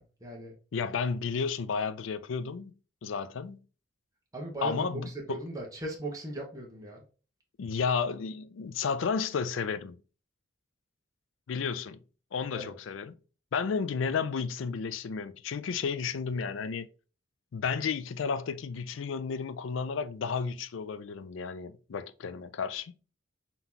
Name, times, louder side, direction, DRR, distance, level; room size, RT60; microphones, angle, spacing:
voice 1, 0.0-0.5 4.3-7.0 12.5-12.7, right 1 dB, 20° right, 1.0 m, -38 dB
voice 2, 0.7-2.7 3.0-3.6 4.6-5.4 7.6-10.0 11.5-12.0 12.3-13.1 13.5-16.9 17.5-22.9, left 5 dB, 85° left, 0.4 m, -32 dB
3.7 x 2.9 x 3.7 m
head